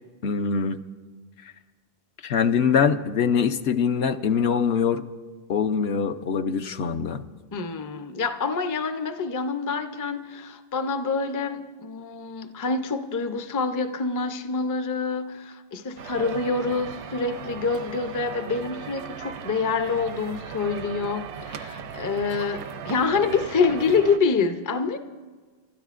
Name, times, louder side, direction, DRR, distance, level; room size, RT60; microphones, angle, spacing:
voice 1, 0.2-0.8 2.2-5.0 5.5-7.2, left 6 dB, 70° left, 0.9 m, -23 dB
voice 2, 7.5-25.0, left 4 dB, 30° left, 0.4 m, -26 dB
sound 1, 16.0-24.2, right 7 dB, 80° right, 0.9 m, -38 dB
30.0 x 13.0 x 2.5 m
omnidirectional pair, 1.1 m